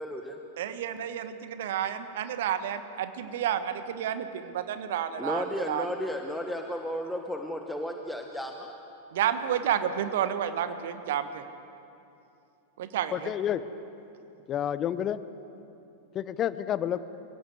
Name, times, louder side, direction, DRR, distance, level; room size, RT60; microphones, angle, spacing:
voice 1, 0.0-0.4 5.2-8.7, equal, ahead, 3 dB, 1.5 m, -33 dB
voice 2, 0.6-5.8 9.1-11.4 12.8-13.3, right 9 dB, 55° right, 10 dB, 1.4 m, -30 dB
voice 3, 13.1-13.6 14.5-15.2 16.1-17.0, left 10 dB, 30° left, 15 dB, 0.9 m, -29 dB
25.0 x 17.0 x 8.0 m, 2.7 s
figure-of-eight pair, 90°, 0 cm